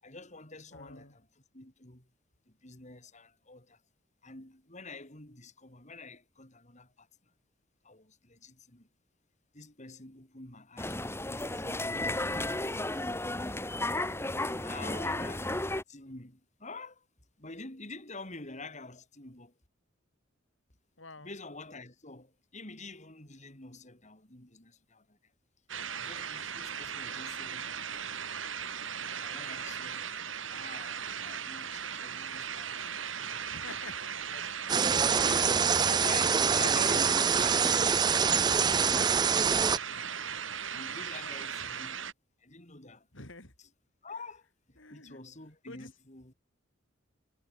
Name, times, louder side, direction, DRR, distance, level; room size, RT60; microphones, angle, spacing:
voice 1, 0.0-2.1 2.6-3.8 4.2-7.1 7.8-8.9 9.5-12.1 12.6-13.6 14.4-17.1 17.4-19.5 21.2-25.3 25.9-27.9 29.1-32.7 34.3-34.4 35.0-39.5 40.7-42.1 42.4-43.1 43.6-43.7 44.0-46.3, left 3 dB, 35° left, 5.5 m, -48 dB
voice 2, 0.7-1.1 14.8-15.2 21.0-21.3 33.5-33.9 34.4-34.5 35.1-36.1 36.6-37.0 43.1-43.5 44.8-45.2 45.7-45.9, left 2 dB, 75° left, 7.4 m, -46 dB
sound 1, 10.8-15.8, left 2 dB, 15° left, 2.8 m, -33 dB
sound 2, 25.7-42.1, right 7 dB, 80° right, 6.2 m, -38 dB
sound 3, 34.7-39.8, right 6 dB, 20° right, 0.4 m, -25 dB
head